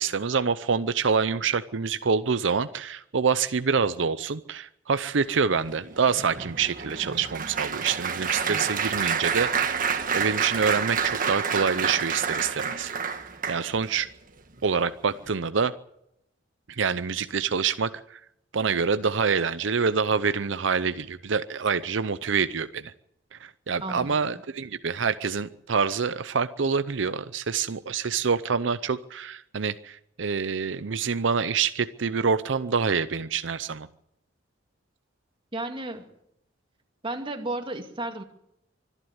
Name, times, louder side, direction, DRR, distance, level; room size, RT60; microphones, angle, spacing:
voice 1, 0.0-9.8 10.1-12.9 13.5-14.1 14.6-15.7 16.7-18.2 18.5-22.9 23.3-33.9, right 5 dB, 75° right, 12 dB, 0.7 m, -26 dB
Applause, 5.6-13.9 14.6-14.8 15.1-15.3, right 6 dB, 45° right, 1.6 m, -29 dB
voice 2, 23.8-24.2 35.5-36.1 37.0-38.2, right 2 dB, 30° right, 5 dB, 2.3 m, -33 dB
25.0 x 11.0 x 9.6 m, 0.79 s
head